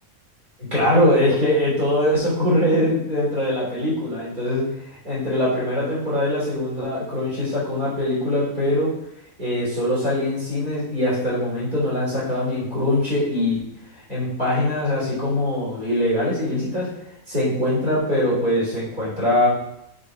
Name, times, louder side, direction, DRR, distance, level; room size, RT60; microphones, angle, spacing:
voice 1, 0.7-4.6 4.9-8.9 9.4-13.6 14.1-16.9 17.3-19.5, left 1 dB, 35° right, -8 dB, 3.8 m, -22 dB
6.5 x 6.4 x 4.9 m, 0.80 s
omnidirectional pair, 1.5 m